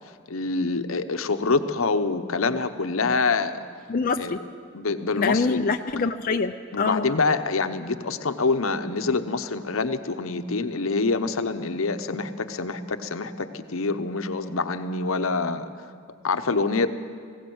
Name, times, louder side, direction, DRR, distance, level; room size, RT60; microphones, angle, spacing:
voice 1, 0.3-3.6 4.2-4.4 4.7-5.6 6.7-15.9 16.2-16.9, left 3 dB, 75° left, 9 dB, 0.9 m, -26 dB
voice 2, 3.9-4.4 5.2-7.1, left 4 dB, 45° left, 5 dB, 0.5 m, -25 dB
19.5 x 17.0 x 7.9 m, 2.1 s
head